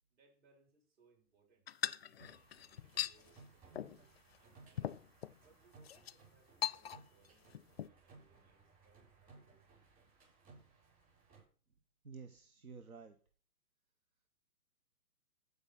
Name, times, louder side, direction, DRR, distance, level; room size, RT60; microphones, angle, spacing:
voice 1, 0.1-1.7 2.0-4.0 4.4-5.0 5.4-9.6, right 4 dB, 45° right, -1 dB, 7.6 m, -71 dB
sound 1, 1.7-3.2 3.7-4.0 4.3-4.4 4.8-5.4 5.8-6.1 6.6-7.3 7.5-7.9, left 10 dB, 45° left, 0.4 m, -40 dB
sound 2, 2.2-11.4, right 3 dB, 20° right, 6.9 m, -63 dB
voice 2, 12.0-13.2, right 5 dB, 75° right, 7 dB, 1.3 m, -51 dB
15.0 x 5.4 x 6.0 m, 0.41 s
figure-of-eight pair, 125°, 43 cm